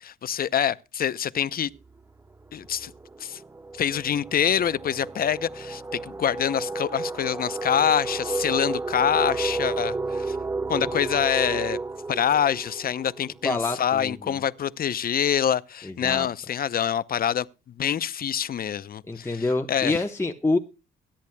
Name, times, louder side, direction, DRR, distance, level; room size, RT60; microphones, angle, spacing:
voice 1, 0.0-1.7 2.5-2.9 3.2-3.4 3.7-10.4 10.7-11.8 12.1-17.5 17.8-20.0, left 9 dB, 50° left, 0.7 m, -26 dB
sound 1, 1.8-2.0 2.3-13.9, right 3 dB, 15° right, 0.5 m, -32 dB
voice 2, 13.4-14.1 15.8-16.3 19.1-20.6, left 2 dB, 15° left, 1.2 m, -26 dB
22.5 x 10.5 x 2.3 m
cardioid pair, 90°, 20 cm